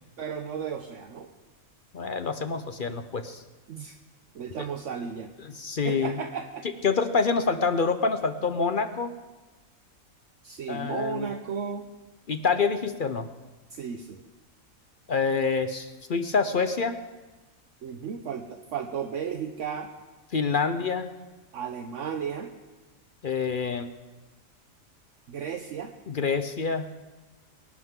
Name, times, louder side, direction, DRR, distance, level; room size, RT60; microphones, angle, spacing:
voice 1, 0.2-1.3 3.7-4.0 4.3-5.3 5.8-6.7 10.4-11.9 13.7-14.2 17.8-19.9 21.5-22.5 25.3-25.9, right 7 dB, 65° right, 6 dB, 1.1 m, -34 dB
voice 2, 1.9-3.4 4.6-4.7 5.4-6.1 6.8-9.1 10.7-11.3 12.3-13.3 15.1-17.0 20.3-21.1 23.2-23.9 26.1-26.9, left 5 dB, 50° left, 9 dB, 0.7 m, -26 dB
24.0 x 11.5 x 3.7 m, 1.1 s
omnidirectional pair, 1.4 m